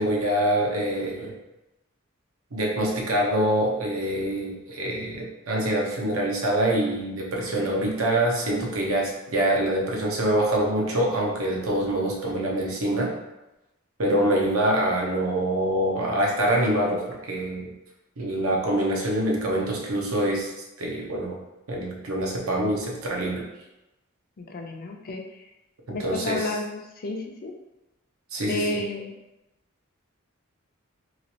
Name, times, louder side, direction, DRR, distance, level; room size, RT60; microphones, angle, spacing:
voice 1, 0.0-1.3 2.5-13.1 14.0-17.7 18.2-20.5 20.8-21.4 21.7-23.5 26.0-26.5 28.3-28.8, right 1 dB, 80° right, -1 dB, 0.8 m, -25 dB
voice 2, 24.4-25.4 25.9-27.5 28.4-29.1, left 2 dB, 45° left, 2 dB, 0.4 m, -32 dB
3.0 x 3.0 x 2.8 m, 0.97 s
head